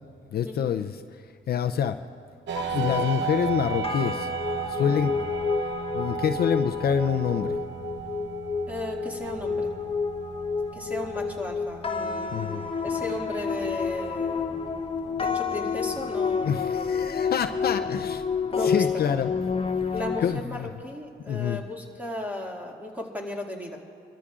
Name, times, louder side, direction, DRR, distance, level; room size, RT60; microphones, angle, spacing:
voice 1, 0.3-2.0 2.7-4.3 4.7-5.2 5.9-7.6 12.3-12.6 16.4-19.3 20.2-20.7 21.3-21.6, left 8 dB, 50° left, 7 dB, 0.5 m, -27 dB
sound 1, 2.5-20.4, left 5 dB, 30° left, 0.9 m, -30 dB
sound 2, 2.5-16.1, right 9 dB, 65° right, 0.8 m, -36 dB
voice 2, 8.7-9.7 10.7-14.8 15.2-17.1 18.5-19.0 19.9-23.8, left 2 dB, 10° right, 0 dB, 2.2 m, -35 dB
26.0 x 13.5 x 2.5 m, 2.2 s
cardioid pair, 90°, 20 cm